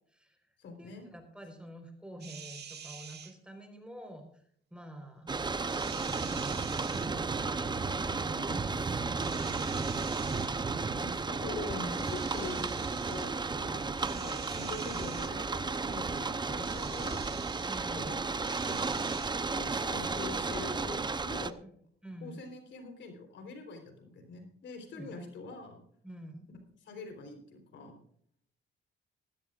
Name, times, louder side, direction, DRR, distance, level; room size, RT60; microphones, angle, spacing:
voice 1, 0.0-0.5 0.8-4.4 4.7-5.4 6.0-8.7 9.0-11.7 17.6-18.2 21.6-22.5 24.9-25.1 26.0-26.5, right 1 dB, 5° right, 4 dB, 4.3 m, -48 dB
voice 2, 0.6-1.1 8.3-8.6 11.0-17.3 17.9-18.2 18.6-19.1 19.5-21.6 22.2-25.8 26.8-27.9, left 3 dB, 70° left, 5 dB, 4.0 m, -44 dB
sound 1, 2.2-3.3 5.6-7.1 9.2-10.5 11.9-13.3 14.0-15.3 16.6-17.9 18.4-19.3, right 7 dB, 55° right, 2.2 m, -47 dB
sound 2, 5.3-21.5, right 4 dB, 20° right, 0.8 m, -33 dB
18.5 x 16.0 x 2.5 m, 0.63 s
cardioid pair, 90°, 20 cm